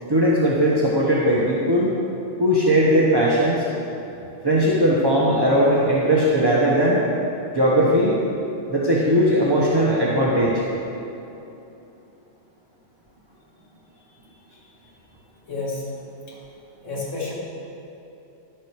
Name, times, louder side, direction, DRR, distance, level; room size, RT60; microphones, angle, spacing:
voice 1, 0.1-1.9 2.4-3.6 4.4-7.0 7.5-8.2 8.7-10.6, equal, 20° right, -6 dB, 1.1 m, -19 dB
voice 2, 15.5-15.8 16.3-16.4 16.8-17.3, left 3 dB, 90° left, -6 dB, 2.6 m, -30 dB
12.0 x 7.7 x 4.8 m, 2.9 s
omnidirectional pair, 1.3 m